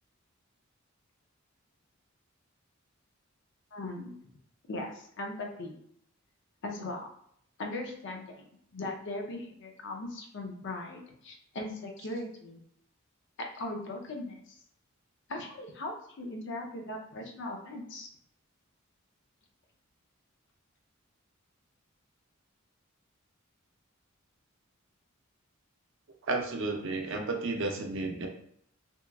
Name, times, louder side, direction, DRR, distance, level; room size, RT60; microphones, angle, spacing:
voice 1, 3.7-4.2 4.7-5.8 6.6-7.1 7.6-8.5 8.7-12.6 13.5-14.4 15.3-18.1, left 2 dB, 60° left, 2 dB, 0.5 m, -39 dB
voice 2, 26.3-28.3, right 3 dB, 65° right, 3 dB, 0.5 m, -32 dB
2.9 x 2.3 x 2.2 m, 0.69 s
head